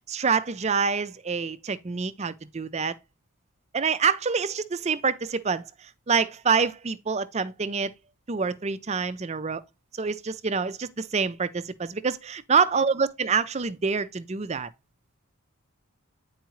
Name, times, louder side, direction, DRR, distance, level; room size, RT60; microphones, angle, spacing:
voice 1, 0.1-2.9 3.7-5.6 6.1-7.9 8.3-9.6 10.0-14.7, right 5 dB, 30° right, 0.5 m, -26 dB
9.2 x 4.6 x 3.1 m
head